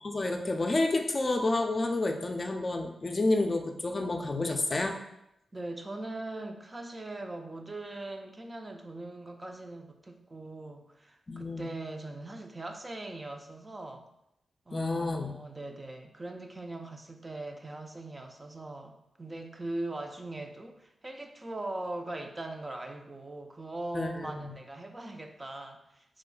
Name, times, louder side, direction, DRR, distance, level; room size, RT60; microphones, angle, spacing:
voice 1, 0.0-5.0 11.3-11.6 14.7-15.4 23.9-24.5, left 2 dB, 45° left, 4 dB, 0.4 m, -29 dB
voice 2, 5.5-14.1 14.7-26.0, right 2 dB, 30° right, 4 dB, 0.5 m, -40 dB
3.1 x 2.1 x 3.7 m, 0.82 s
cardioid pair, 45°, 0 cm